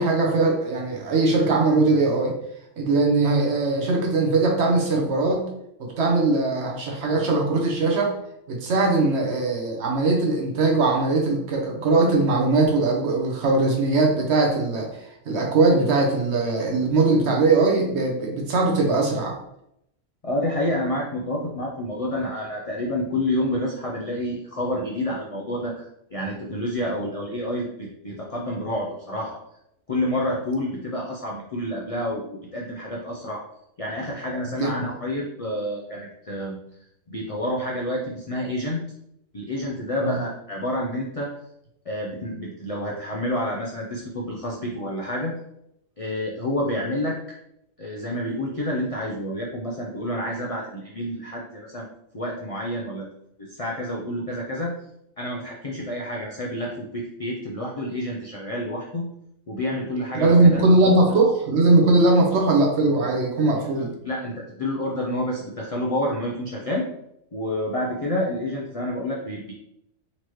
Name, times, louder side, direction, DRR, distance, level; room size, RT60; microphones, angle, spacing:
voice 1, 0.0-2.4 2.8-5.5 5.8-8.1 8.5-14.9 15.3-19.4 34.6-34.9 40.0-40.1 60.1-63.9, right 2 dB, 60° right, 0 dB, 1.0 m, -20 dB
voice 2, 20.2-25.9 26.1-29.4 29.9-33.4 33.8-36.6 37.1-38.8 39.3-41.3 41.9-45.3 46.0-47.2 47.8-51.9 52.1-53.0 53.4-54.7 55.2-59.1 59.5-60.9 63.5-66.9 67.3-69.5, left 1 dB, 50° left, -3 dB, 0.4 m, -29 dB
4.2 x 3.0 x 3.0 m, 0.77 s
omnidirectional pair, 1.4 m